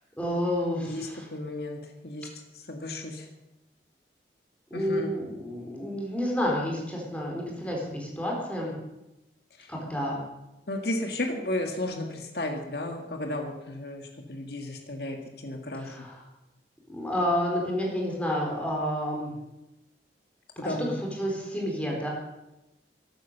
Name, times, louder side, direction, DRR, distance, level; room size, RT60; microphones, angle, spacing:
voice 1, 0.2-1.3 4.7-8.7 9.7-10.2 15.7-16.2 16.9-19.3 20.6-22.1, equal, 10° left, -2 dB, 4.2 m, -30 dB
voice 2, 0.8-2.3 2.7-3.3 4.7-5.1 10.7-16.1 20.6-20.9, left 1 dB, 60° left, 3 dB, 1.9 m, -33 dB
14.5 x 12.0 x 6.9 m, 0.97 s
head